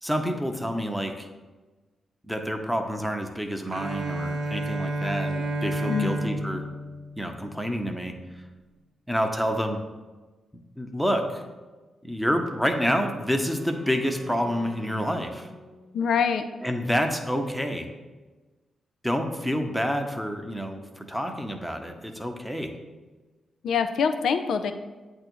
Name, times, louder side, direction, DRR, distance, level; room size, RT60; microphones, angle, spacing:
voice 1, 0.0-1.3 2.3-6.6 7.2-8.1 9.1-9.8 10.8-11.4 12.0-15.5 16.6-17.9 19.0-22.7, equal, ahead, 4 dB, 0.8 m, -28 dB
Bowed string instrument, 3.7-7.8, right 1 dB, 70° right, 0.6 m, -31 dB
Wind instrument woodwind instrument, 12.4-16.3, equal, 40° right, 1.0 m, -48 dB
voice 2, 15.9-16.4 23.6-24.7, left 6 dB, 75° left, 9 dB, 0.3 m, -24 dB
7.9 x 2.7 x 4.5 m, 1.2 s
supercardioid pair, 40°, 0 cm